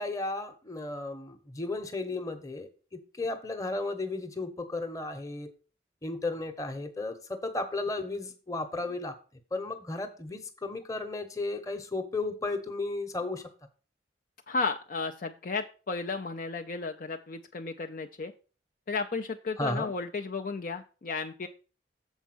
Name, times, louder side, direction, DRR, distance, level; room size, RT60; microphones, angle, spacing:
voice 1, 0.0-5.5 6.0-9.1 9.5-13.4 19.6-19.9, left 2 dB, 20° left, 6 dB, 0.9 m, -34 dB
voice 2, 14.5-18.3 18.9-21.5, left 4 dB, 45° left, 5 dB, 0.4 m, -33 dB
7.2 x 4.5 x 6.0 m, 0.37 s
head